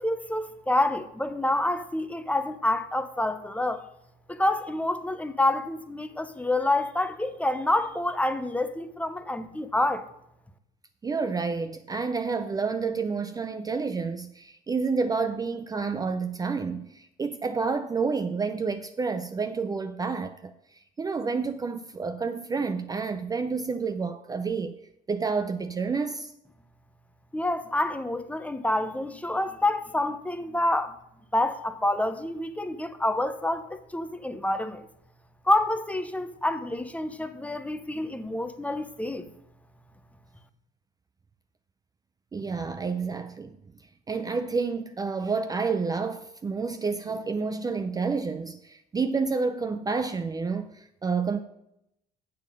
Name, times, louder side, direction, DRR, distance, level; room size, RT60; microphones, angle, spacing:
voice 1, 0.0-3.9 4.3-10.1 27.3-31.0 31.3-34.9 35.4-39.3, left 1 dB, 10° left, 0.7 m, -27 dB
voice 2, 11.0-24.8 25.1-26.3 42.3-43.6 44.1-51.4, right 4 dB, 20° right, 0.5 m, -29 dB
8.4 x 7.4 x 5.1 m
cardioid pair, 110°, 17 cm